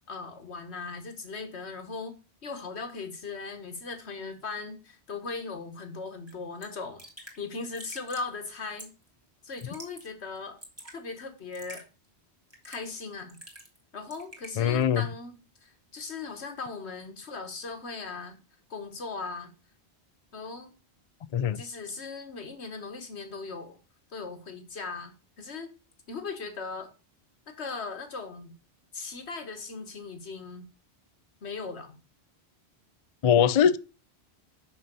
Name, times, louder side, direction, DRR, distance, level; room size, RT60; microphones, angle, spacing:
voice 1, 0.1-2.2 2.4-7.0 7.4-8.9 9.4-10.6 10.9-11.9 12.6-13.4 13.9-18.4 18.7-19.5 20.3-20.7 21.6-23.8 24.1-25.7 26.1-26.9 27.5-28.5 28.9-30.7 31.4-32.0, left 4 dB, 80° left, 1.7 m, -38 dB
Raindrop / Drip, 6.3-6.4 6.6-6.7 7.0-7.4 7.7-8.3 8.8-9.1 9.5-10.1 10.4-11.0 11.5-11.8 12.5-12.9 13.3-13.8 14.1-14.5, right 1 dB, 15° right, 2.3 m, -46 dB
voice 2, 14.6-15.1 21.3-21.6 33.2-33.8, left 8 dB, 50° left, 0.4 m, -22 dB
6.4 x 5.9 x 5.3 m
omnidirectional pair, 1.1 m